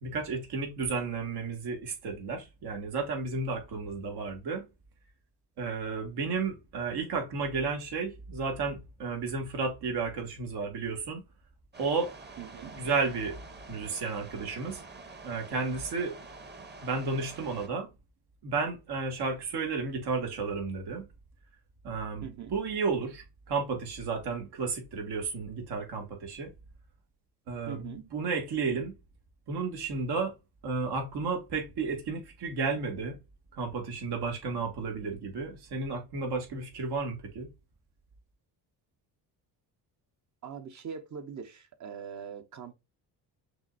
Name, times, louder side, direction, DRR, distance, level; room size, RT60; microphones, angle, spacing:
voice 1, 0.0-4.7 5.6-11.2 11.8-12.1 12.7-13.4 13.7-14.8 15.2-16.2 16.8-17.9 18.4-21.1 21.8-26.5 27.5-28.9 29.5-30.3 30.6-33.2 33.5-37.5, right 4 dB, 70° right, 2.0 m, -32 dB
sound 1, 11.7-17.7, right 3 dB, 25° right, 1.1 m, -47 dB
voice 2, 12.4-12.8 22.2-22.6 27.7-28.1 40.4-42.7, right 7 dB, 45° right, 1.0 m, -42 dB
6.1 x 3.3 x 2.5 m
cardioid pair, 105°, 40 cm